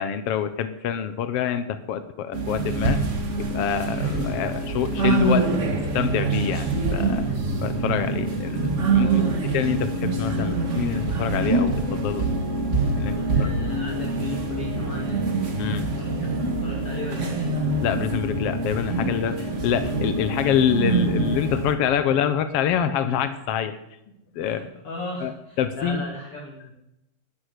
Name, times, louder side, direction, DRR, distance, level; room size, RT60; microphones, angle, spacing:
voice 1, 0.0-3.0 3.4-5.5 5.9-7.2 7.6-12.3 13.0-13.5 15.6-15.8 17.8-23.8 24.3-24.7 25.2-25.3 25.6-26.0, left 9 dB, 75° left, 10 dB, 1.3 m, -26 dB
sound 1, 2.3-21.8, right 3 dB, 40° right, 1.0 m, -25 dB
voice 2, 8.9-9.3 13.1-15.3 16.0-16.3 16.6-17.6 22.0-22.1 24.4-26.7, left 1 dB, 40° left, -3 dB, 3.6 m, -37 dB
19.5 x 11.0 x 6.7 m, 0.84 s
omnidirectional pair, 4.1 m